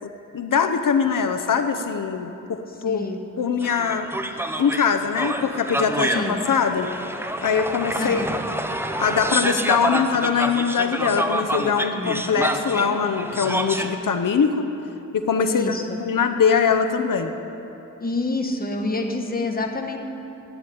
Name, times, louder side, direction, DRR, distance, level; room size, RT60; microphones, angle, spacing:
voice 1, 0.0-3.0 3.4-4.1 4.6-6.1 6.5-6.9 7.4-8.2 8.8-14.7 15.1-17.3, left 6 dB, 85° left, 6 dB, 0.8 m, -22 dB
voice 2, 2.8-3.2 6.1-6.3 7.9-8.3 11.9-12.3 15.5-16.0 18.0-20.0, left 2 dB, 30° left, 2 dB, 1.3 m, -27 dB
sound 1, 3.6-13.9, right 1 dB, 5° right, 0.7 m, -28 dB
12.0 x 8.9 x 9.9 m, 2.9 s
wide cardioid pair, 120°, 32 cm